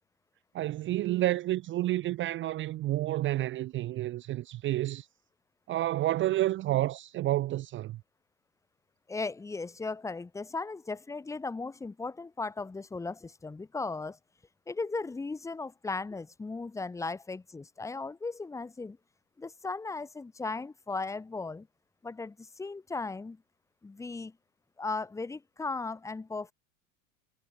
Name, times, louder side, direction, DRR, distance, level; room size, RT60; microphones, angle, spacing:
voice 1, 0.5-5.1 5.7-8.0, right 15 dB, 30° right, 0.6 m, -30 dB
voice 2, 9.1-14.2 14.7-19.0 19.4-21.7 22.0-23.4 23.8-24.3 24.8-26.5, left 3 dB, 10° left, 0.8 m, -37 dB
supercardioid pair, 135°, 39 cm